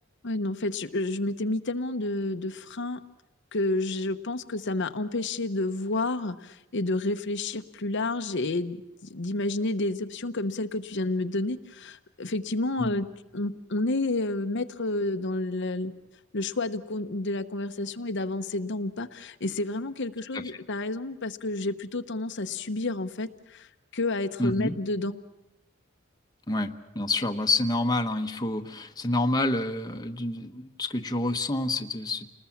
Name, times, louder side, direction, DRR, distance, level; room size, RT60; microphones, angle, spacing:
voice 1, 0.2-3.0 3.5-8.8 9.0-13.1 13.3-15.9 16.3-25.2, left 2 dB, 60° left, 7 dB, 1.0 m, -30 dB
voice 2, 24.4-24.8 26.5-32.3, left 2 dB, 20° left, 5 dB, 1.2 m, -28 dB
29.0 x 20.0 x 7.2 m, 0.93 s
head